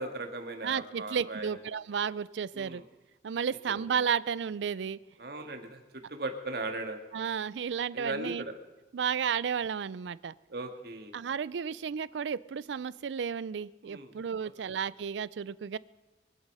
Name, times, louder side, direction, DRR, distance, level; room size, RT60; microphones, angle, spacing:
voice 1, 0.0-1.6 2.5-2.8 3.7-3.8 5.2-7.0 7.9-8.5 10.5-11.1 13.8-14.1, right 2 dB, 60° right, 5 dB, 1.7 m, -38 dB
voice 2, 0.6-2.8 3.2-5.0 7.1-8.4 8.9-10.3 11.1-15.8, right 7 dB, 80° right, 20 dB, 0.4 m, -33 dB
24.0 x 8.0 x 5.5 m, 1.2 s
head